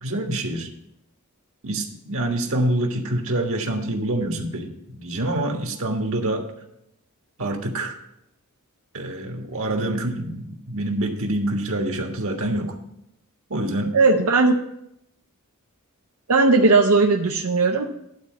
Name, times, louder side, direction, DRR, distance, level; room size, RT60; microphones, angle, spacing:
voice 1, 0.0-0.7 1.6-6.5 7.4-7.9 8.9-12.7 13.5-14.0, right 1 dB, 65° right, 3 dB, 1.5 m, -26 dB
voice 2, 13.9-14.6 16.3-17.8, right 3 dB, 85° right, 1 dB, 0.7 m, -17 dB
11.5 x 4.2 x 7.4 m, 0.81 s
head